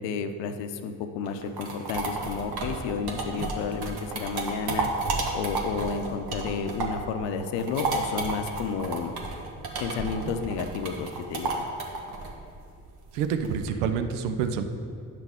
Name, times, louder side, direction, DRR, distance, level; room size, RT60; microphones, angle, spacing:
voice 1, 0.0-4.9 5.3-9.1 9.8-11.6, left 5 dB, 65° left, 8 dB, 0.7 m, -31 dB
sound 1, 1.3-7.1 7.4-13.7, right 3 dB, 55° right, 1.2 m, -32 dB
voice 2, 13.1-14.6, right 7 dB, 75° right, 8 dB, 0.6 m, -27 dB
8.9 x 5.9 x 3.5 m, 2.4 s
hypercardioid pair, 45°, 46 cm